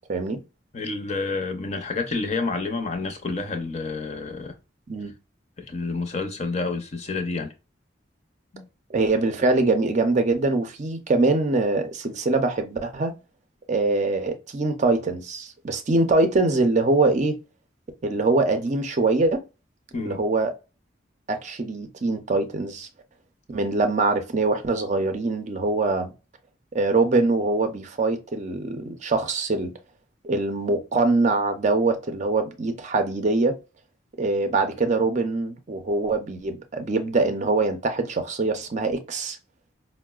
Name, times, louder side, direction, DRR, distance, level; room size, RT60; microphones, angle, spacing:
voice 1, 0.1-0.4 4.9-5.1 8.9-13.1 13.7-17.4 18.0-19.4 20.0-20.5 21.3-22.9 23.5-26.1 26.7-29.7 30.2-33.6 34.2-39.4, right 3 dB, 40° right, 0.5 m, -23 dB
voice 2, 0.7-4.6 5.6-7.5 8.5-8.6 19.9-20.2, left 3 dB, 35° left, 0.6 m, -29 dB
4.5 x 2.0 x 2.3 m
head